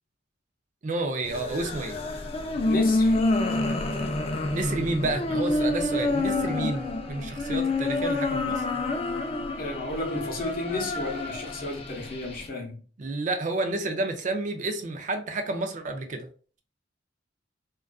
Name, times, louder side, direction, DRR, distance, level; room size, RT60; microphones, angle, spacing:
voice 1, 0.8-2.0 4.5-8.6 13.0-16.3, right 2 dB, 40° right, 0.4 m, -30 dB
sound 1, 1.2-12.5, left 2 dB, 30° left, 0.3 m, -28 dB
voice 2, 2.6-3.2 9.6-12.8, left 2 dB, 50° left, 0.7 m, -33 dB
2.4 x 2.3 x 2.3 m
head